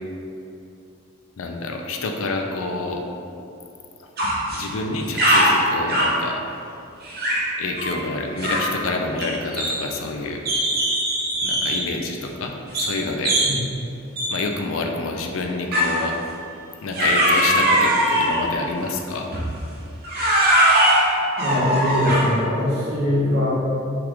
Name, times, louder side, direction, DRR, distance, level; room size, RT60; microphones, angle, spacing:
voice 1, 1.4-3.0 4.0-4.1 4.5-6.4 7.6-10.4 11.4-13.4 14.3-16.2 16.8-19.3, left 3 dB, 85° left, 3 dB, 0.5 m, -28 dB
sound 1, 4.2-4.6 4.9-6.2 7.0-7.5 7.8-8.0 8.4-8.8 9.2-10.1 10.4-11.9 12.7-13.0 13.2-13.6 14.2-14.4 15.7-16.0 16.9-18.5 19.3-19.5 20.0-22.4, right 1 dB, 50° right, 0.9 m, -20 dB
voice 2, 21.4-23.5, left 1 dB, 65° right, -8 dB, 1.5 m, -22 dB
5.8 x 2.4 x 3.6 m, 2.6 s
head